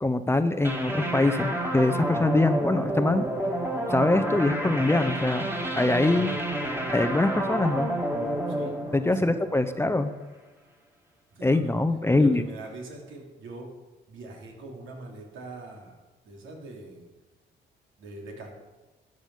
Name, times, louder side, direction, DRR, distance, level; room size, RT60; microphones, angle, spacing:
voice 1, 0.0-3.3 3.9-5.5 5.8-6.3 6.9-7.9 8.9-10.1 11.4-12.4, left 2 dB, 10° left, 10 dB, 0.7 m, -23 dB
sound 1, 0.6-10.0, right 1 dB, 10° right, 2.2 m, -30 dB
voice 2, 11.3-11.8 12.1-13.7 14.1-16.0 16.2-17.1 18.0-18.5, right 2 dB, 80° right, 0 dB, 3.2 m, -43 dB
13.0 x 9.1 x 5.6 m, 1.2 s
cardioid pair, 90°, 20 cm